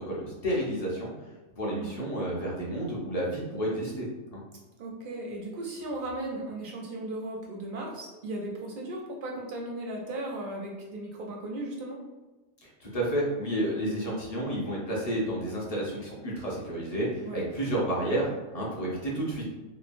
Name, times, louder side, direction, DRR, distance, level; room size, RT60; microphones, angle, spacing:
voice 1, 0.1-1.1 1.6-4.1 4.3-4.4 12.8-18.3 18.5-19.4, right 1 dB, 40° left, -4 dB, 0.6 m, -30 dB
voice 2, 1.7-2.1 4.8-12.0 17.2-17.5, right 1 dB, 65° right, -1 dB, 0.5 m, -36 dB
2.9 x 2.1 x 2.5 m, 1.1 s
omnidirectional pair, 1.3 m